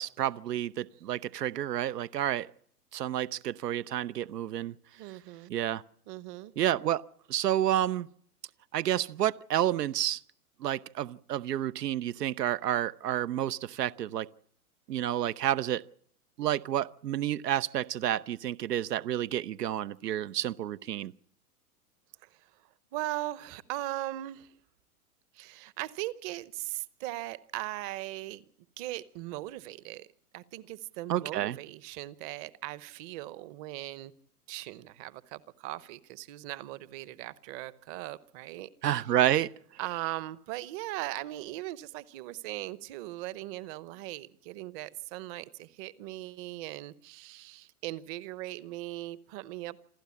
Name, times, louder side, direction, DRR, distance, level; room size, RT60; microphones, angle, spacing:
voice 1, 0.0-2.5 2.9-4.7 5.5-5.8 6.6-7.0 7.3-8.1 8.7-10.2 10.6-14.3 14.9-15.8 16.4-21.1 31.1-31.6 38.8-39.5, right 12 dB, 90° right, 0.8 m, -30 dB
voice 2, 5.0-5.5 6.1-6.5 22.2-22.5 22.9-24.5 25.3-28.4 28.8-30.1 30.3-34.1 34.5-38.7 39.8-49.8, right 16 dB, 30° right, 0.9 m, -39 dB
27.5 x 12.5 x 8.5 m
hypercardioid pair, 140°, 46 cm